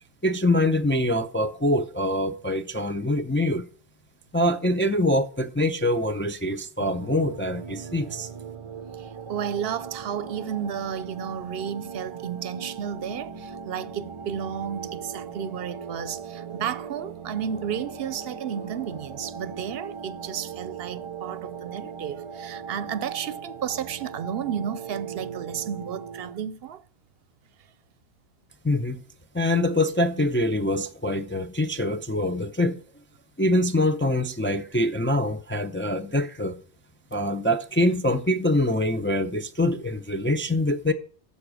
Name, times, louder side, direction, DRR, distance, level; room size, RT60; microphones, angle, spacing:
voice 1, 0.2-3.7 4.3-8.3 28.6-29.0 29.3-32.8 33.4-36.6 37.1-40.9, left 1 dB, 15° left, 0.4 m, -24 dB
sound 1, 6.8-26.4, right 6 dB, 35° right, 0.6 m, -39 dB
voice 2, 9.0-26.8, right 8 dB, 70° right, 0.8 m, -32 dB
9.9 x 7.0 x 6.1 m
omnidirectional pair, 1.1 m